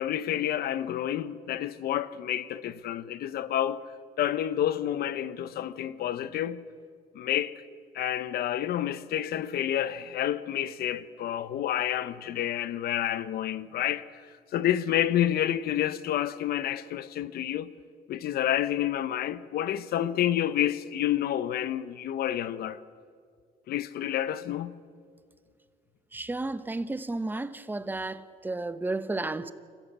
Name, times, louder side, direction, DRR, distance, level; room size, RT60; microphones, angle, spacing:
voice 1, 0.0-3.8 4.2-6.6 7.1-7.5 7.9-14.1 14.5-17.7 18.1-22.8 23.7-24.8, left 11 dB, 65° left, 1.0 m, -29 dB
voice 2, 26.1-29.5, right 2 dB, 10° right, 0.9 m, -32 dB
27.0 x 15.0 x 8.2 m
cardioid pair, 110°, 17 cm